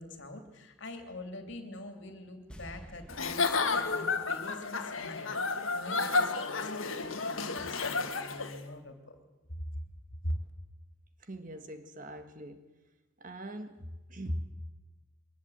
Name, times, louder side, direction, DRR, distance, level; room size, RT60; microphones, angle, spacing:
voice 1, 0.0-6.7 7.0-9.2 9.5-9.6 10.2-10.4, left 1 dB, 60° left, 6 dB, 2.9 m, -43 dB
sound 1, 2.5-5.7 6.0-6.1, equal, 5° left, 1.8 m, -52 dB
Giggle / Chuckle chortle, 3.1-8.6, left 4 dB, 75° left, 1.7 m, -31 dB
voice 2, 11.2-12.7 13.2-14.5, equal, 40° right, 8 dB, 1.5 m, -40 dB
23.0 x 19.0 x 8.0 m, 1.2 s
head